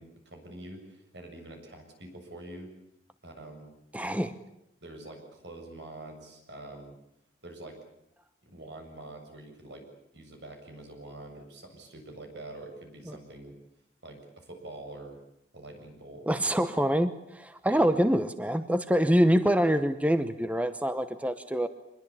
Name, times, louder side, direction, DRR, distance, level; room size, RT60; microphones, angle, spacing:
voice 1, 0.0-2.7 3.2-3.7 4.8-6.9 7.4-7.8 8.4-9.9 10.1-13.5 14.0-15.2 15.5-16.5 17.7-17.9, right 1 dB, 75° right, 4 dB, 7.5 m, -45 dB
voice 2, 3.9-4.3 13.1-13.2 16.3-21.7, equal, 10° right, 11 dB, 0.9 m, -25 dB
26.0 x 21.5 x 8.6 m, 0.79 s
head